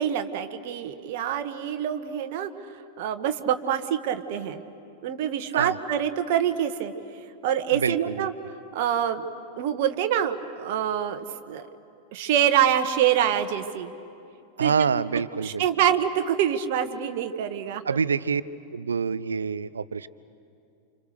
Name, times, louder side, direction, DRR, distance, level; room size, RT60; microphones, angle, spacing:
voice 1, 0.0-2.5 3.0-4.6 5.0-6.9 7.4-8.3 8.7-9.2 9.6-11.7 12.1-13.9 14.6-14.9 15.4-18.0, right 10 dB, 50° right, 8 dB, 1.4 m, -25 dB
voice 2, 7.7-8.5 14.6-15.7 17.8-18.4 18.7-20.1, right 6 dB, 70° right, 18 dB, 0.6 m, -26 dB
30.0 x 27.0 x 6.7 m, 2.6 s
figure-of-eight pair, 90°, 0 cm